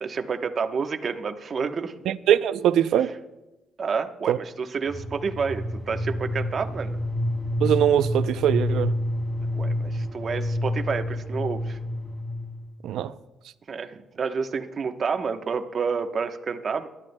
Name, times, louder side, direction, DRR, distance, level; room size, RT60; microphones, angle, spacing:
voice 1, 0.0-1.9 3.8-7.0 9.5-11.8 13.7-16.9, right 5 dB, 45° right, 1.0 m, -29 dB
voice 2, 2.1-3.1 4.3-4.4 7.6-8.9 12.8-13.1, right 10 dB, 80° right, 0.5 m, -22 dB
sound 1, 4.9-12.7, left 1 dB, 25° left, 2.6 m, -28 dB
22.5 x 12.5 x 2.2 m
cardioid pair, 90°, 0 cm